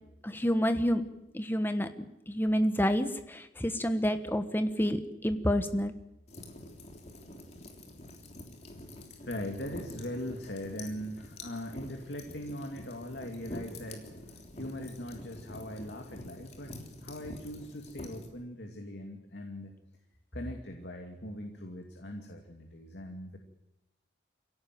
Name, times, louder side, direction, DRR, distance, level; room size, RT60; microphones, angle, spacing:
voice 1, 0.2-1.0 1.3-1.9 2.3-5.9, equal, 10° left, 9 dB, 1.3 m, -28 dB
sound 1, 6.3-18.3, left 1 dB, 35° left, 3.4 m, -47 dB
voice 2, 9.2-16.7 17.0-19.7 20.3-23.4, left 1 dB, 65° left, 2 dB, 2.4 m, -41 dB
24.5 x 17.0 x 9.4 m, 0.92 s
head